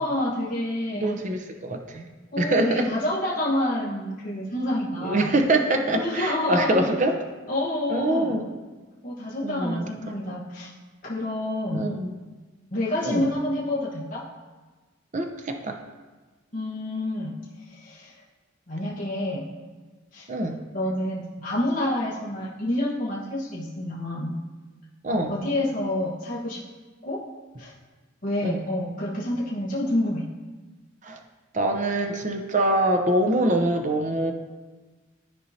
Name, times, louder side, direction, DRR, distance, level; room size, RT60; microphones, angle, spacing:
voice 1, 0.0-1.1 2.3-5.3 5.9-6.9 7.5-8.3 9.0-10.7 11.0-11.9 12.7-14.2 16.5-17.3 17.7-18.2 18.7-19.4 20.1-20.3 20.7-24.3 25.3-26.6 27.0-27.2 27.6-27.7 28.2-30.3, left 1 dB, 40° left, -6 dB, 1.1 m, -28 dB
voice 2, 0.9-2.0 2.4-2.9 5.0-7.1 7.9-8.5 9.4-10.1 11.7-12.2 13.0-13.3 15.1-15.8 20.3-20.6 25.0-25.3 28.4-28.6 31.0-31.2 31.5-34.3, right 1 dB, 40° right, 4 dB, 0.6 m, -24 dB
13.0 x 4.6 x 2.8 m, 1.3 s
head